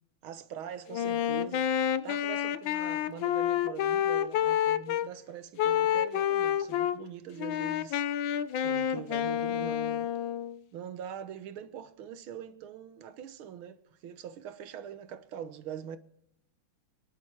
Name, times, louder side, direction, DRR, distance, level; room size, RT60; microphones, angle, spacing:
voice 1, 0.2-1.7 2.0-8.0 8.6-10.1 10.7-16.0, right 9 dB, 75° right, 1.8 m, -43 dB
Wind instrument woodwind instrument, 0.9-5.1 5.6-7.0 7.4-10.6, left 10 dB, 70° left, 1.4 m, -29 dB
23.5 x 10.5 x 4.7 m
omnidirectional pair, 2.4 m